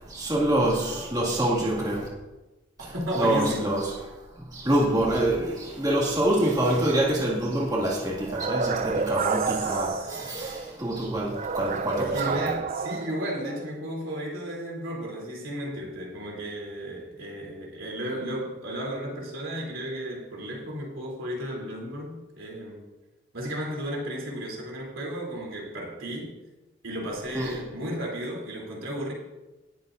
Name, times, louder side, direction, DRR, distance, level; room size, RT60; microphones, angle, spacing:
voice 1, 0.2-2.0 3.1-3.8 4.7-5.4 5.8-8.1 8.5-8.8 9.1-9.4 9.6-9.9 10.8-11.3 11.6-12.3 27.3-27.5, right 1 dB, 20° right, -5 dB, 2.2 m, -24 dB
voice 2, 2.8-3.7 9.2-10.1 12.0-22.9 23.3-26.3 26.8-29.1, equal, 90° right, -3 dB, 3.4 m, -34 dB
sound 1, 8.3-10.7 11.3-13.7, right 5 dB, 35° right, 0.4 m, -29 dB
19.0 x 7.3 x 2.7 m, 1.1 s
head